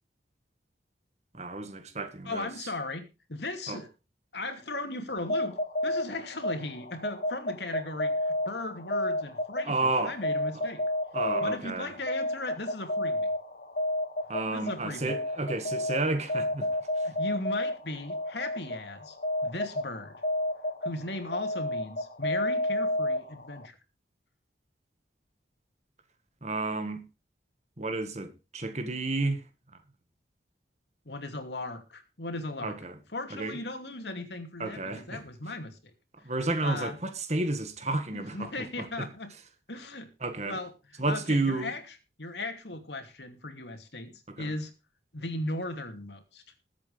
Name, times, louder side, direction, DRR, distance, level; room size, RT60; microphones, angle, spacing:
voice 1, 1.3-2.5 3.7-3.8 9.6-10.2 10.5-10.6 11.1-11.9 14.3-16.7 26.4-27.0 27.8-29.4 32.6-33.0 33.3-33.6 34.6-35.2 36.2-39.1 40.2-40.6 41.0-41.7 44.3-44.5, right 2 dB, 40° right, 1.8 m, -31 dB
voice 2, 2.2-3.9 4.3-5.6 5.8-10.8 11.4-13.3 14.5-15.1 17.0-19.2 19.4-20.2 20.8-23.8 31.1-32.8 33.1-35.8 36.6-37.0 38.1-39.3 39.7-40.1 40.5-41.8 42.2-44.7 45.1-46.4, left 2 dB, 70° left, 2.7 m, -37 dB
sound 1, 5.2-23.7, left 1 dB, 55° left, 1.5 m, -32 dB
21.0 x 8.2 x 3.4 m
head